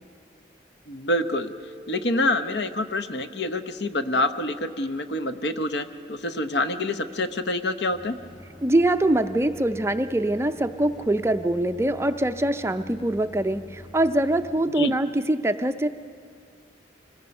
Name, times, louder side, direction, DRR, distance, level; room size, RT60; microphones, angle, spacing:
voice 1, 0.9-1.5 1.9-8.1 14.7-14.9, left 2 dB, 65° left, 10 dB, 0.8 m, -26 dB
Mallet percussion, 1.3-5.5, equal, 40° left, 7.7 m, -50 dB
sound 1, 7.9-14.6, left 1 dB, 25° left, 1.8 m, -46 dB
voice 2, 8.6-15.9, right 1 dB, 15° right, 9 dB, 0.4 m, -23 dB
26.5 x 19.5 x 5.4 m, 2.2 s
head